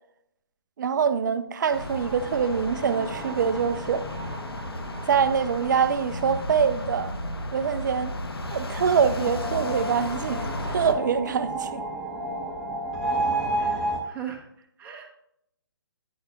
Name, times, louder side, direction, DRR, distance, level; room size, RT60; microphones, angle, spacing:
voice 1, 0.8-4.0 5.1-7.1 7.5-8.1 8.5-11.8, right 7 dB, 50° right, 0.6 m, -24 dB
sound 1, 1.7-10.9, left 1 dB, 80° left, 1.1 m, -34 dB
sound 2, 1.9-7.3 8.8-14.0, right 1 dB, ahead, 1.5 m, -33 dB
voice 2, 13.6-15.1, right 9 dB, 15° right, 1.3 m, -39 dB
9.5 x 8.8 x 2.4 m
figure-of-eight pair, 140°, 13 cm